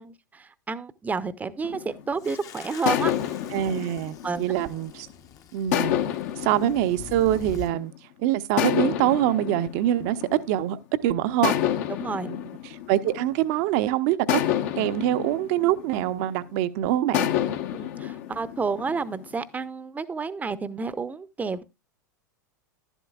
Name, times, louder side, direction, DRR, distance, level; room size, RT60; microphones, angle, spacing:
voice 1, 0.0-3.3 4.2-4.4 12.0-12.3 17.7-21.6, right 4 dB, 15° right, 0.8 m, -30 dB
sound 1, 1.6-2.3 2.9-5.1 5.7-7.9 8.6-10.8 11.4-13.7 14.3-16.5 17.1-19.4, left 11 dB, 55° left, 1.1 m, -29 dB
sound 2, 2.2-7.7, left 8 dB, 35° left, 0.9 m, -44 dB
voice 2, 3.5-5.1 5.5-6.0 6.4-7.9 8.2-10.2 10.5-11.5 12.3-14.4 14.8-17.3, right 13 dB, 50° right, 0.8 m, -24 dB
11.5 x 11.0 x 2.4 m
figure-of-eight pair, 90°, 11 cm